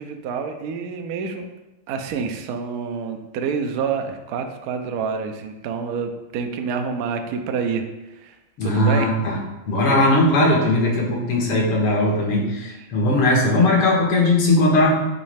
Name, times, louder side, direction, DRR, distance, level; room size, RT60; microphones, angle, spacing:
voice 1, 0.0-1.5 1.9-8.4 8.6-9.1 9.7-9.8 12.8-13.2, right 6 dB, 90° right, 5 dB, 0.8 m, -28 dB
voice 2, 8.6-9.4 9.7-15.0, left 1 dB, 85° left, -3 dB, 2.3 m, -18 dB
9.4 x 3.1 x 3.3 m, 1.0 s
omnidirectional pair, 2.4 m